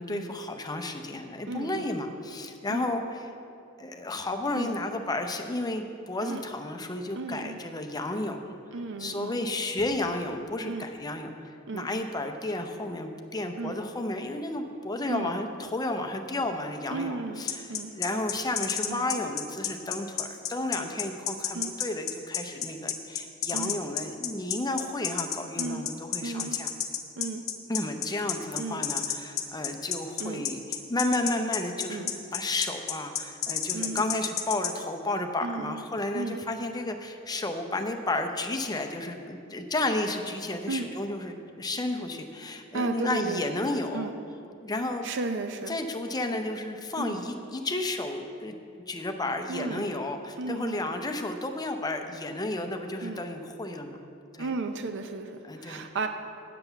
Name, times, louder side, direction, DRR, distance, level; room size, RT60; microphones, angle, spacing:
voice 1, 0.0-3.2 3.8-8.6 9.0-26.7 27.7-32.1 32.3-44.1 44.6-45.1 45.7-48.6 48.9-54.0 54.3-54.5 55.4-55.8, left 2 dB, 20° left, 5 dB, 0.6 m, -32 dB
voice 2, 1.5-1.9 2.7-2.9 4.6-4.7 6.2-6.4 7.1-7.6 8.7-9.4 10.7-10.9 11.7-11.9 13.6-13.8 15.1-15.3 16.9-17.4 17.7-17.9 18.9-19.1 21.5-21.7 23.5-23.7 25.6-25.9 26.2-26.6 27.2-27.4 28.6-28.9 30.2-30.5 31.9-32.1 33.7-34.0 35.4-35.8 36.1-36.4 40.7-40.9 42.7-43.4 43.9-44.1 45.0-45.8 46.9-47.2 49.5-49.9 50.4-50.8 53.0-53.2 54.4-56.1, right 3 dB, 60° right, 7 dB, 0.6 m, -34 dB
sound 1, 17.5-34.7, left 10 dB, 75° left, 0.9 m, -30 dB
7.7 x 6.9 x 8.1 m, 2.6 s
head